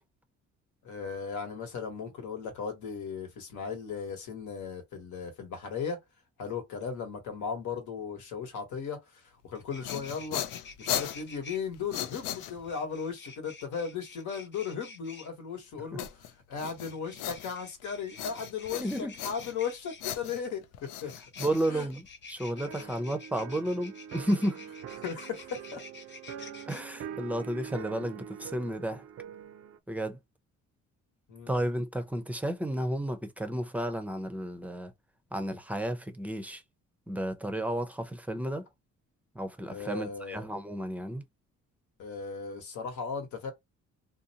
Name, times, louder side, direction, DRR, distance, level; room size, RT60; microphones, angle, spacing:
voice 1, 0.8-6.0 6.4-10.4 10.8-16.1 16.5-21.1 21.7-21.9 22.8-22.9 25.0-25.8 31.3-31.5 39.7-40.5 42.0-43.5, left 6 dB, 75° left, 1.2 m, -36 dB
sound 1, 9.2-9.3 9.5-11.6 12.6-15.3 16.7-20.1 21.0-26.8, left 4 dB, 40° left, 0.7 m, -49 dB
sound 2, 9.5-12.9 16.0-17.8 18.2-19.7 20.0-22.3, left 11 dB, 90° left, 0.5 m, -38 dB
voice 2, 18.8-19.2 21.4-24.7 26.7-29.0 29.9-30.2 31.5-34.9 35.3-36.6 37.1-38.7 39.3-41.2, right 1 dB, 5° right, 0.5 m, -32 dB
sound 3, 22.5-29.8, right 9 dB, 55° right, 0.4 m, -44 dB
2.6 x 2.1 x 2.7 m
cardioid pair, 90°, 30 cm